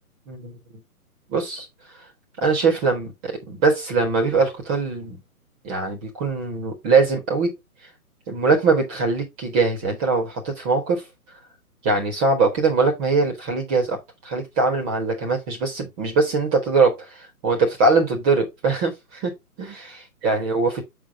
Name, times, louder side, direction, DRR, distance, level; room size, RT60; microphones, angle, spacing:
voice 1, 1.3-1.7 2.4-5.2 5.6-7.6 8.3-11.0 11.8-14.0 14.2-17.0 17.4-20.8, right 4 dB, 25° right, 4.0 m, -22 dB
8.5 x 5.3 x 3.6 m
figure-of-eight pair, 135°, 45 cm